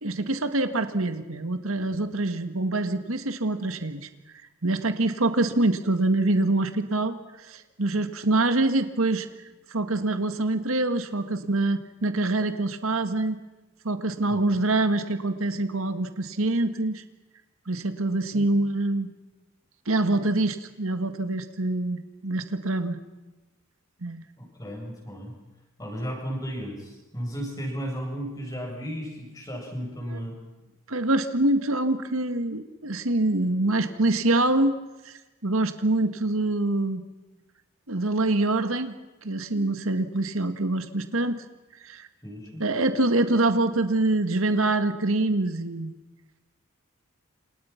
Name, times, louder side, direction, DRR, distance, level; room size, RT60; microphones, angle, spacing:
voice 1, 0.0-4.1 4.6-9.3 9.7-13.4 13.8-17.0 17.7-19.1 19.9-23.0 24.0-24.2 30.1-30.2 30.9-34.8 35.1-37.0 37.9-38.9 39.2-41.4 41.8-42.1 42.6-45.9, right 2 dB, 80° right, 9 dB, 1.8 m, -25 dB
voice 2, 24.4-25.3 25.8-30.3 42.2-42.6, equal, 15° left, 0 dB, 7.7 m, -34 dB
28.5 x 27.0 x 5.9 m, 1.1 s
head